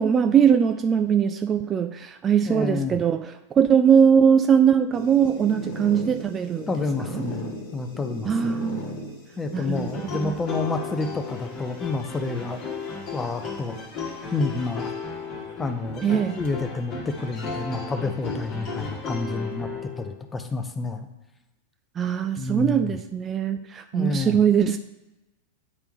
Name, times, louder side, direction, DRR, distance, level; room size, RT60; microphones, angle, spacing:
voice 1, 0.0-6.7 7.1-7.2 8.2-8.8 9.5-10.3 16.0-16.4 22.0-24.8, right 7 dB, 25° right, 7 dB, 0.3 m, -21 dB
voice 2, 2.5-3.0 6.7-8.6 9.4-12.6 13.1-13.8 14.3-14.9 15.6-19.7 20.0-21.1 22.4-22.9 23.9-24.4, left 3 dB, 15° left, 7 dB, 0.6 m, -29 dB
sound 1, 4.9-14.4 15.2-15.7 16.0-16.1 16.5-16.6 17.4-18.6, equal, 55° left, 1.3 m, -39 dB
sound 2, 9.7-20.2, left 4 dB, 35° left, 1.4 m, -35 dB
9.6 x 3.4 x 3.1 m, 1.0 s
figure-of-eight pair, 90°, 0 cm